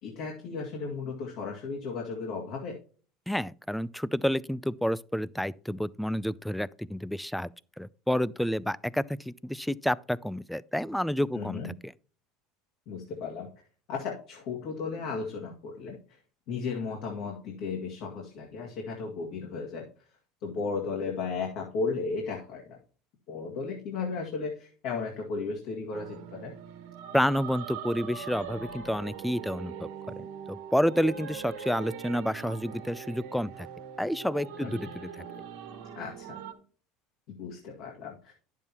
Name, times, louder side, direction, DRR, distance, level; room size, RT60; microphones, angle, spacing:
voice 1, 0.0-2.8 11.3-11.7 12.9-13.5 13.9-16.0 16.5-19.9 20.4-22.8 23.3-26.5 34.6-34.7 36.0-36.4 37.4-38.3, left 4 dB, 65° left, 2.2 m, -35 dB
voice 2, 3.3-7.5 7.8-11.9 27.1-29.9 30.2-33.7 34.0-35.2, equal, ahead, 0.4 m, -29 dB
sound 1, 25.9-36.5, right 7 dB, 70° right, 1.4 m, -42 dB
10.5 x 7.2 x 2.9 m
hypercardioid pair, 80°, 0 cm